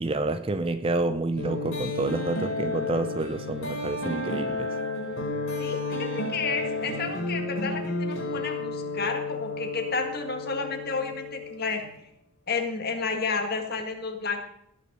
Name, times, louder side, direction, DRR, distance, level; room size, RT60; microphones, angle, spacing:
voice 1, 0.0-4.7, right 2 dB, 25° right, 0.4 m, -29 dB
sound 1, 1.4-12.0, left 2 dB, 60° left, 4.0 m, -32 dB
voice 2, 5.6-11.8 12.5-14.4, left 4 dB, 45° left, 1.7 m, -31 dB
18.0 x 6.5 x 5.3 m
head